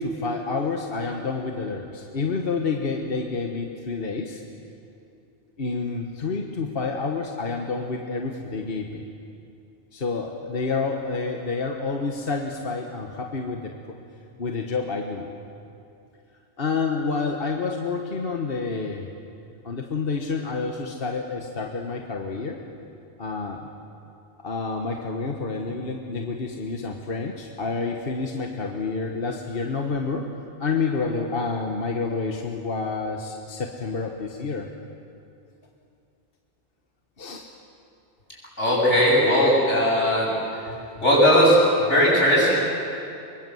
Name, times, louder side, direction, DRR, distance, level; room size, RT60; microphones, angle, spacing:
voice 1, 0.0-4.4 5.6-9.0 9.9-14.0 14.4-15.3 16.6-19.1 19.6-22.6 23.2-23.7 24.4-30.3 30.6-34.7 37.2-37.5, left 4 dB, 50° left, 2 dB, 1.6 m, -29 dB
voice 2, 38.6-40.3 41.0-41.6 41.9-42.6, equal, 80° left, -4 dB, 8.2 m, -18 dB
24.5 x 23.0 x 7.8 m, 2.6 s
omnidirectional pair, 1.2 m